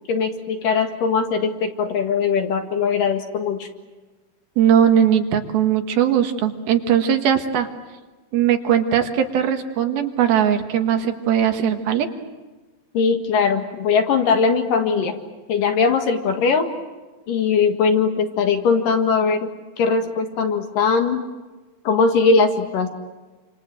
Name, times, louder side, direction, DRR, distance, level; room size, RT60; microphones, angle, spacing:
voice 1, 0.1-3.7 12.9-15.2 15.5-16.7 17.3-19.5 19.8-21.2 21.9-22.9, left 5 dB, 65° left, 5 dB, 3.3 m, -20 dB
voice 2, 4.6-7.7 8.3-12.1, right 9 dB, 75° right, 5 dB, 3.5 m, -19 dB
28.0 x 27.0 x 7.7 m, 1.2 s
omnidirectional pair, 4.3 m